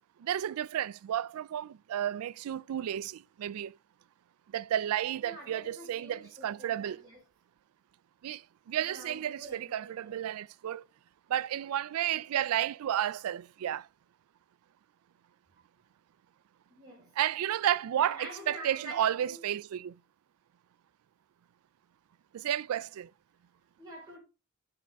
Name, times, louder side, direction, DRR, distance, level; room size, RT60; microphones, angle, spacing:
voice 1, 0.2-3.8 4.5-7.0 8.2-10.9 11.3-13.9 17.2-20.0 22.3-23.1, right 11 dB, 80° right, 0.3 m, -32 dB
voice 2, 5.2-7.2 8.8-10.2 16.7-17.1 18.0-19.4 23.8-24.2, right 2 dB, 20° right, 4.7 m, -47 dB
9.9 x 5.1 x 3.5 m
head